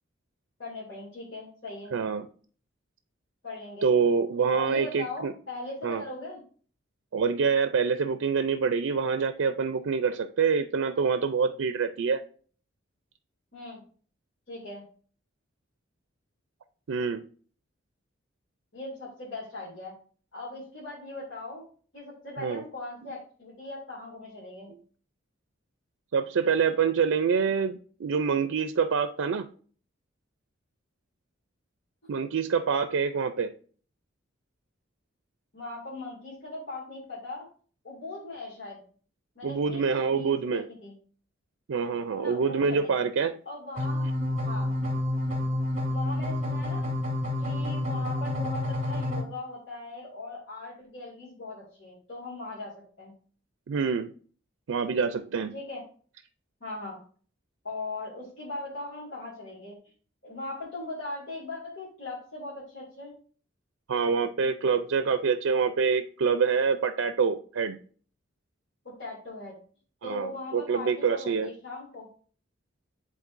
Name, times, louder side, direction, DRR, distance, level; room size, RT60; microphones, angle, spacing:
voice 1, 0.6-2.0 3.4-3.9 4.5-6.4 13.5-13.8 14.5-14.9 18.7-19.9 20.3-24.7 35.5-37.5 37.8-38.8 39.4-40.9 42.1-43.1 43.5-44.1 44.4-44.8 45.9-46.9 47.4-52.7 53.0-53.1 55.5-55.8 56.6-57.0 57.6-59.8 60.2-63.1 68.8-69.6 70.0-72.1, left 2 dB, 70° left, -7 dB, 2.3 m, -39 dB
voice 2, 1.9-2.3 3.8-5.3 5.8-6.0 7.1-12.2 16.9-17.2 22.4-22.6 23.0-23.1 26.1-29.5 32.1-33.5 39.4-40.6 41.7-43.3 53.7-54.1 54.7-55.5 63.9-67.8 70.0-71.5, right 5 dB, 85° right, 9 dB, 0.4 m, -26 dB
sound 1, 43.8-49.2, left 1 dB, 35° right, 1.7 m, -29 dB
10.0 x 4.0 x 2.5 m, 0.43 s
head